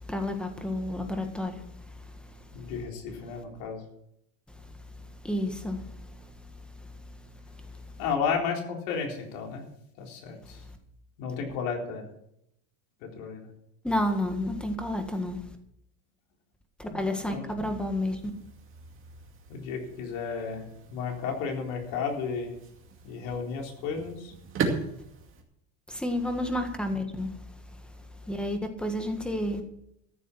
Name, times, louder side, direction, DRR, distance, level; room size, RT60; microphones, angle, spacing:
voice 1, 0.0-2.5 5.2-6.3 6.8-6.9 7.6-7.8 13.8-15.5 16.8-18.2 25.9-27.4 28.3-29.6, left 1 dB, ahead, 1.7 m, -31 dB
voice 2, 2.5-3.8 8.0-9.7 10.0-10.6 11.2-12.1 13.0-13.5 16.8-17.4 19.5-22.6 23.0-24.3, left 5 dB, 75° left, 4.0 m, -33 dB
sound 1, 18.0-25.4, right 5 dB, 30° right, 2.4 m, -38 dB
14.0 x 7.2 x 7.2 m
cardioid pair, 140°, 41 cm